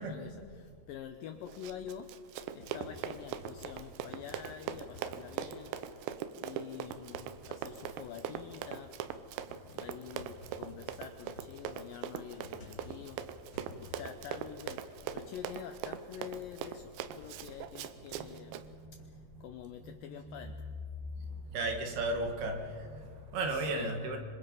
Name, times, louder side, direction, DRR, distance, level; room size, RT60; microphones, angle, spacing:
voice 1, 0.0-2.1 2.6-5.7 6.4-8.9 9.7-13.2 13.8-18.6 19.4-20.7 23.5-24.0, left 9 dB, 85° left, 8 dB, 2.0 m, -47 dB
Run, 1.5-18.7, right 9 dB, 90° right, 3.2 m, -42 dB
sound 1, 2.6-6.2 6.5-20.5, left 1 dB, 30° left, 3.1 m, -56 dB
voice 2, 18.2-19.2 19.8-20.8 21.2-24.2, right 2 dB, 65° right, 3 dB, 3.7 m, -37 dB
26.0 x 25.0 x 5.4 m, 2.1 s
omnidirectional pair, 5.0 m